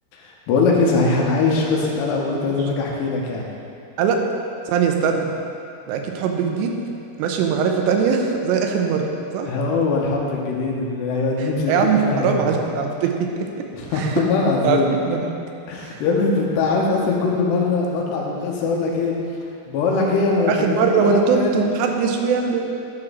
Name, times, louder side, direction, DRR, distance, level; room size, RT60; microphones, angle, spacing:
voice 1, 0.1-3.5 9.5-12.5 13.7-14.9 15.7-19.1 19.7-21.7, left 3 dB, 85° left, -2 dB, 3.1 m, -21 dB
voice 2, 4.7-5.3 5.9-6.8 7.2-9.5 11.4-13.7 14.0-14.2 14.6-15.3 15.8-16.0 20.5-22.7, right 6 dB, 85° right, 3 dB, 2.9 m, -21 dB
11.0 x 6.0 x 3.8 m, 2.5 s
omnidirectional pair, 4.9 m